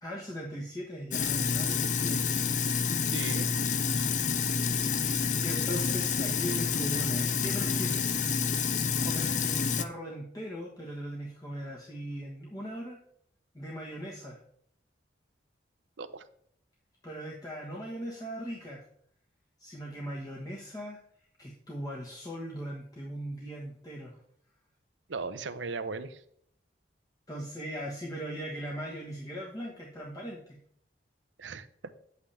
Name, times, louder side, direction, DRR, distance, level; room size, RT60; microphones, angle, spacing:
voice 1, 0.0-2.3 5.4-8.4 9.0-13.0 13.5-14.4 17.0-18.8 19.6-21.0 21.4-24.2 27.3-30.6, equal, 20° left, -3 dB, 1.2 m, -39 dB
Sink (filling or washing), 1.1-9.8, left 6 dB, 40° left, 0.5 m, -28 dB
voice 2, 3.1-3.5 16.0-16.2 25.1-26.2 31.4-31.7, right 4 dB, 85° right, 12 dB, 0.7 m, -37 dB
10.0 x 8.2 x 3.4 m, 0.66 s
head